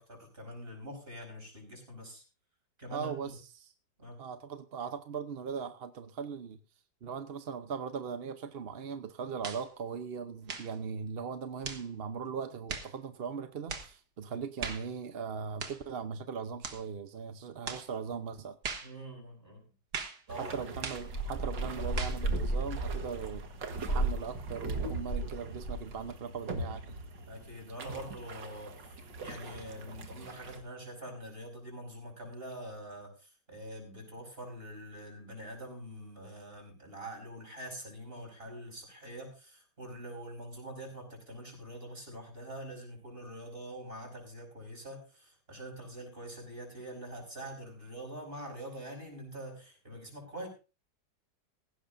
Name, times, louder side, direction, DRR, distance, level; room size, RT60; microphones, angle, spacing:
voice 1, 0.0-2.2 2.8-3.4 4.0-4.2 18.8-19.7 20.3-20.6 27.3-29.0 29.2-50.5, right 1 dB, 30° right, 3 dB, 5.8 m, -45 dB
voice 2, 2.9-3.7 4.2-6.6 7.0-18.6 20.3-23.5 23.7-27.0, right 6 dB, 50° right, 9 dB, 0.7 m, -39 dB
sound 1, 9.4-9.7 10.4-10.8 11.6-11.9 12.7-12.9 13.7-13.9 14.6-14.9 15.6-15.8 16.6-16.8 17.7-17.9 18.6-18.9 19.9-20.2 20.8-21.1 22.0-22.2, right 5 dB, 70° right, 2.1 m, -39 dB
sound 2, 20.3-30.6, right 2 dB, 85° right, 2.3 m, -43 dB
sound 3, 21.0-25.3 25.6-26.0, right 2 dB, 50° left, 6.7 m, -34 dB
17.5 x 15.5 x 2.6 m, 0.32 s
omnidirectional pair, 1.9 m